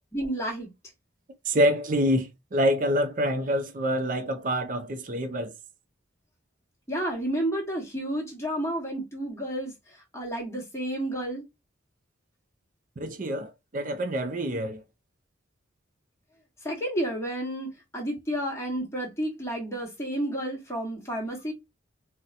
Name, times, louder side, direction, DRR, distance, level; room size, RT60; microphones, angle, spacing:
voice 1, 0.1-0.7 6.9-11.5 16.6-21.5, right 1 dB, 15° left, 1.1 m, -31 dB
voice 2, 1.4-5.5 13.0-14.8, equal, 40° right, 0.5 m, -26 dB
4.1 x 2.1 x 2.4 m
head